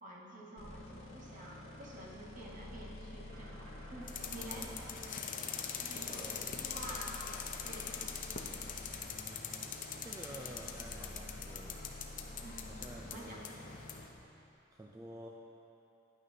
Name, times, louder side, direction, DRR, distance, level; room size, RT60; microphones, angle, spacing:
voice 1, 0.0-4.7 5.8-7.2 7.6-8.0 12.4-12.8 13.0-13.4, right 1 dB, 40° right, -4 dB, 1.3 m, -49 dB
sound 1, 0.6-14.1, left 1 dB, 70° left, 1.2 m, -50 dB
sound 2, 3.3-8.2, equal, 75° right, 1.8 m, -58 dB
sound 3, 4.1-14.1, left 7 dB, 40° left, 0.5 m, -43 dB
voice 2, 4.3-4.8 6.0-6.6 9.1-12.0 12.7-13.9 14.7-15.3, right 1 dB, 15° right, -2 dB, 0.4 m, -51 dB
11.0 x 8.7 x 2.7 m, 2.9 s
head